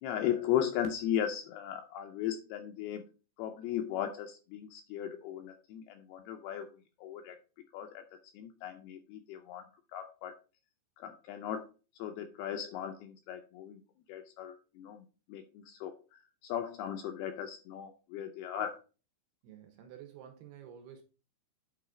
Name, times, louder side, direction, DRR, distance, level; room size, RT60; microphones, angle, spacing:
voice 1, 0.0-3.0 3.4-6.7 7.0-7.4 7.7-8.0 8.3-10.4 11.0-11.7 12.0-13.8 14.1-15.0 15.3-18.8, left 10 dB, 80° left, 2.3 m, -37 dB
voice 2, 19.4-21.0, right 9 dB, 75° right, 2.6 m, -50 dB
8.6 x 4.0 x 4.9 m
omnidirectional pair, 5.1 m